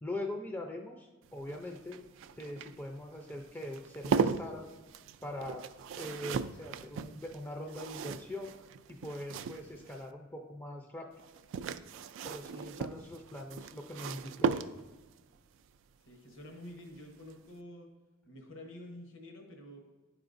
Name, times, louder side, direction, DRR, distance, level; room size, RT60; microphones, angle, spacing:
voice 1, 0.0-2.0 2.4-4.7 5.2-5.6 6.0-8.5 8.9-11.1 12.2-14.6, left 1 dB, 10° left, 1 dB, 0.4 m, -42 dB
sound 1, 1.2-10.1 11.2-15.1 16.7-17.0 17.3-17.4, right 5 dB, 70° right, 0.3 m, -37 dB
voice 2, 16.1-17.9 18.3-19.8, left 1 dB, 75° left, 2 dB, 1.1 m, -49 dB
11.0 x 4.8 x 2.5 m, 1.3 s
head